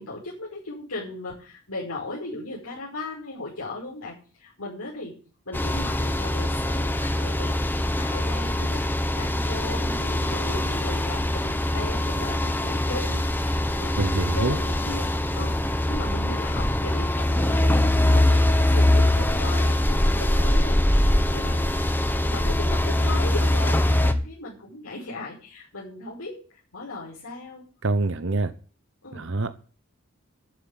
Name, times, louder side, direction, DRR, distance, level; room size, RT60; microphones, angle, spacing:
voice 1, 0.0-5.2 5.5-20.8 21.1-21.7 22.2-27.6 29.0-29.4, left 2 dB, 85° left, 5.7 m, -37 dB
sound 1, 5.5-24.1, left 1 dB, 10° left, 1.1 m, -23 dB
voice 2, 14.0-14.6 27.8-28.5 29.1-29.5, right 2 dB, 60° right, 0.9 m, -25 dB
12.0 x 7.5 x 9.2 m
head